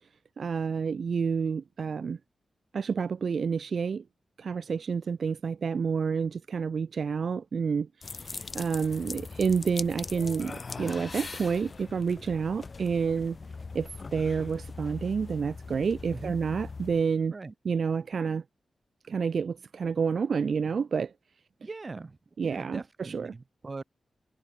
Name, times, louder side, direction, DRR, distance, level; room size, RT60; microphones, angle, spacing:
voice 1, 0.4-2.2 2.7-4.0 4.4-13.4 13.7-17.3 17.6-18.4 19.0-21.1 22.4-23.3, right 6 dB, 65° right, 1.0 m, -29 dB
sound 1, 8.0-17.0, left 4 dB, 45° left, 4.1 m, -41 dB
voice 2, 21.6-23.8, right 3 dB, 35° right, 4.0 m, -41 dB
cardioid pair, 85°, 0 cm